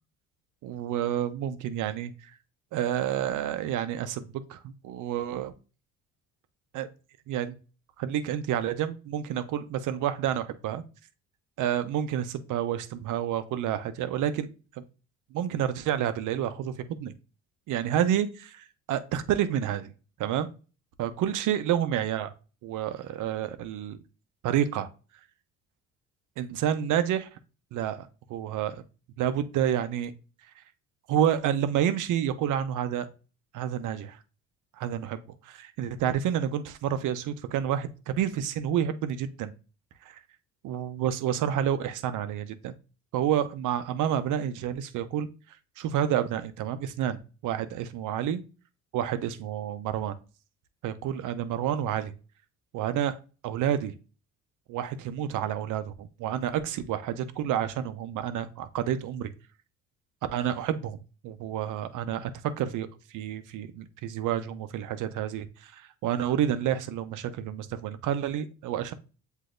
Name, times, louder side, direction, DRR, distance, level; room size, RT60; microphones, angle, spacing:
voice 1, 0.6-2.1 2.7-5.5 6.7-6.9 7.3-7.5 8.0-10.8 11.6-14.5 14.8-14.9 15.3-17.1 17.7-19.9 20.2-20.5 21.0-22.3 22.6-24.0 24.4-24.9 26.4-27.3 27.7-28.8 29.2-30.1 31.1-33.1 33.5-34.2 34.8-39.5 40.1-40.2 40.6-42.7 43.1-45.3 45.8-48.4 48.9-50.2 50.8-52.1 52.7-53.1 53.4-53.9 54.7-59.3 60.3-61.0 61.2-62.3 62.6-62.9 63.1-68.9, right 10 dB, 70° right, 11 dB, 0.7 m, -29 dB
7.7 x 2.7 x 2.5 m, 0.34 s
supercardioid pair, 80°, 32 cm